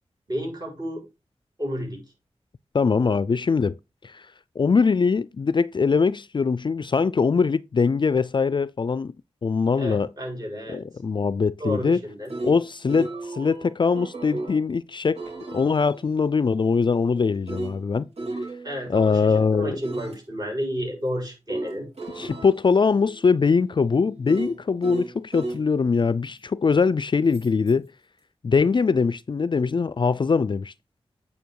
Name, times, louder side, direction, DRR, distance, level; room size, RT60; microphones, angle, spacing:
voice 1, 0.3-1.0 1.6-2.0 9.8-10.8 11.6-12.3 18.6-21.9, equal, 35° right, 6.3 m, -31 dB
voice 2, 2.7-3.8 4.0-4.3 4.6-9.1 9.4-10.1 10.7-12.0 12.4-15.2 15.5-18.1 18.9-19.8 22.2-27.9 28.4-30.7, left 5 dB, 45° left, 0.4 m, -22 dB
sound 1, 12.0-14.6 15.1-19.2 19.8-20.2 21.5-25.6 27.3-27.7, right 2 dB, 70° right, 4.3 m, -36 dB
9.1 x 5.5 x 4.7 m
wide cardioid pair, 75°, 11 cm